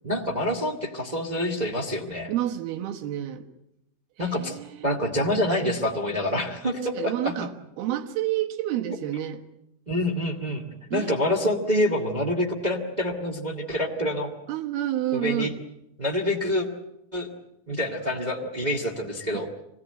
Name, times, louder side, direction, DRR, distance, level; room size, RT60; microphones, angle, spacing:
voice 1, 0.0-2.3 4.2-4.6 4.8-7.3 9.9-14.3 15.1-15.5 16.0-16.7 17.1-17.3 17.7-19.5, left 1 dB, 35° right, 2 dB, 0.6 m, -26 dB
voice 2, 2.3-3.5 4.2-4.9 6.9-9.4 10.9-11.4 14.5-15.5 19.3-19.5, right 12 dB, 75° right, 3 dB, 3.3 m, -29 dB
25.0 x 18.5 x 9.0 m, 0.84 s
omnidirectional pair, 4.5 m